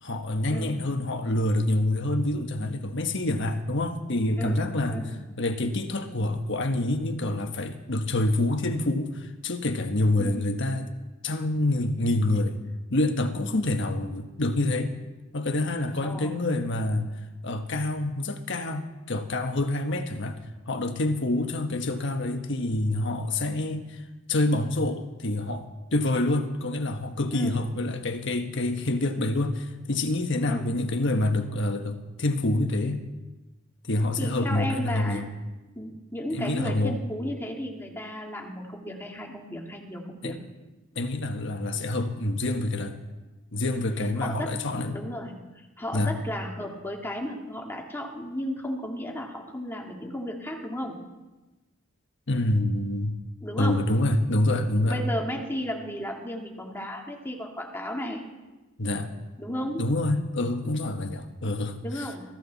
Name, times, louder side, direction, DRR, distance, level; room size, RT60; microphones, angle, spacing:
voice 1, 0.0-5.1 5.4-10.9 11.2-12.6 12.9-15.0 15.3-17.1 17.4-20.4 20.7-33.0 33.8-35.3 36.3-37.0 40.2-40.4 40.9-43.0 43.5-45.0 45.9-46.1 52.3-53.2 53.6-55.0 58.8-59.1 59.8-62.1, left 2 dB, 60° left, 6 dB, 1.4 m, -27 dB
voice 2, 4.4-5.1 10.2-10.4 16.0-16.3 27.3-27.6 30.4-30.7 34.2-35.3 35.8-40.4 44.2-44.5 44.9-51.0 53.4-53.8 54.9-58.2 59.4-59.9 61.8-62.2, equal, 10° left, 0 dB, 2.4 m, -34 dB
21.5 x 15.0 x 4.1 m, 1.1 s
head